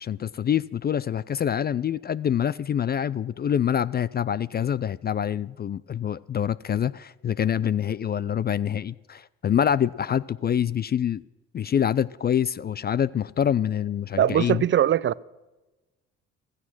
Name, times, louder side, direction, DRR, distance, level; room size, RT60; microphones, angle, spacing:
voice 1, 0.0-11.2 11.5-14.6, left 9 dB, 30° left, 0.4 m, -26 dB
voice 2, 14.2-15.2, right 11 dB, 35° right, 0.6 m, -21 dB
15.5 x 14.5 x 6.0 m
hypercardioid pair, 50°, 34 cm